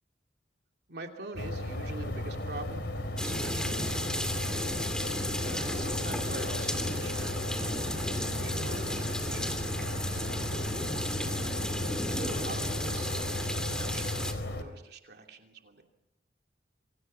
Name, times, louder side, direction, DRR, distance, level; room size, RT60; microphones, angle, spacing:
voice 1, 0.9-2.9 3.2-4.7 5.4-10.9 12.1-15.8, right 2 dB, 60° right, 3 dB, 2.9 m, -45 dB
sound 1, 1.3-14.6, left 1 dB, 65° left, 3.6 m, -35 dB
sound 2, 3.2-14.3, left 1 dB, 5° left, 2.5 m, -34 dB
28.5 x 25.0 x 5.7 m, 0.89 s
head